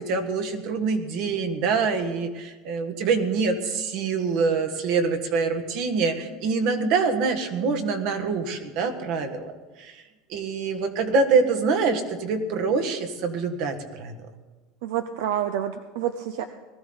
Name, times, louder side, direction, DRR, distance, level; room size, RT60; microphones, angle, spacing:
voice 1, 0.0-9.5 9.8-10.0 10.3-14.1, right 4 dB, 60° right, 6 dB, 1.5 m, -25 dB
voice 2, 14.8-16.4, right 10 dB, 80° right, 9 dB, 0.7 m, -28 dB
19.5 x 14.0 x 4.0 m, 1.2 s
supercardioid pair, 145°, 0 cm